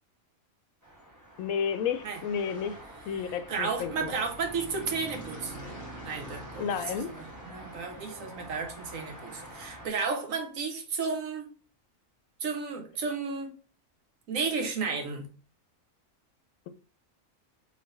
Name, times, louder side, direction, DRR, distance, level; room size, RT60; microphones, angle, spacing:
sound 1, 0.8-9.9, right 1 dB, 15° right, 1.7 m, -45 dB
voice 1, 1.4-2.8 3.1-4.2 6.6-7.1, left 7 dB, 85° left, 1.0 m, -31 dB
voice 2, 3.5-5.7 6.0-6.8 7.1-11.4 12.4-13.6 14.3-15.3, right 5 dB, 75° right, 1.3 m, -33 dB
4.0 x 3.4 x 3.2 m
omnidirectional pair, 1.4 m